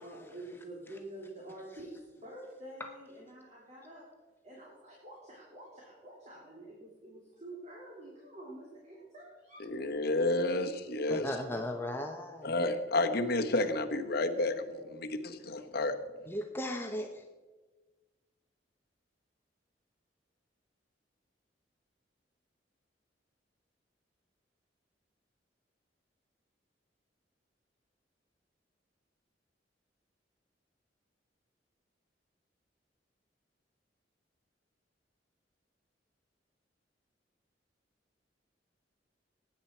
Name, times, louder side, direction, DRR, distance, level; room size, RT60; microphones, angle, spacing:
voice 1, 0.0-4.0 4.4-9.6 10.1-10.8 14.5-15.0, right 1 dB, 40° right, -4 dB, 3.1 m, -48 dB
voice 2, 9.6-11.3 12.4-15.9, left 2 dB, 60° left, 5 dB, 1.1 m, -31 dB
voice 3, 11.1-12.5 16.3-17.2, left 1 dB, 15° left, 3 dB, 0.8 m, -36 dB
19.0 x 9.7 x 4.5 m, 1.3 s
head